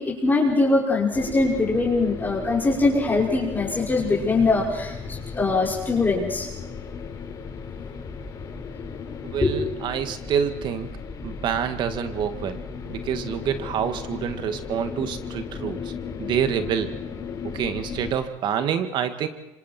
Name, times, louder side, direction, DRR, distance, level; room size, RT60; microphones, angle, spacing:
voice 1, 0.0-6.5 9.4-9.5, left 3 dB, 20° left, -4 dB, 5.6 m, -22 dB
sound 1, 1.1-18.1, left 6 dB, 45° left, 4.9 m, -36 dB
voice 2, 9.2-10.9 11.2-12.6 12.9-15.9 16.2-16.9 17.4-19.3, right 8 dB, 60° right, 8 dB, 2.0 m, -27 dB
26.5 x 25.5 x 4.5 m, 1.0 s
hypercardioid pair, 75°, 9 cm